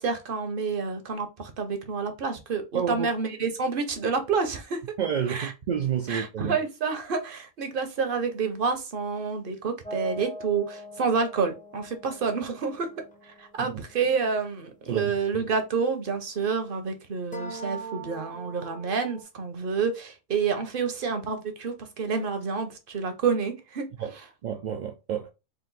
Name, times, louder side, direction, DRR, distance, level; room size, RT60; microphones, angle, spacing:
voice 1, 0.0-4.8 5.3-5.5 6.1-12.9 13.4-23.9, right 5 dB, 50° right, 0.8 m, -28 dB
voice 2, 2.7-3.1 5.0-6.6 13.6-13.8 14.9-15.1 24.0-25.3, right 8 dB, 75° right, 0.4 m, -30 dB
sound 1, 9.8-15.3 17.3-19.2, right 2 dB, 10° left, 0.6 m, -42 dB
3.8 x 2.5 x 3.9 m
omnidirectional pair, 1.3 m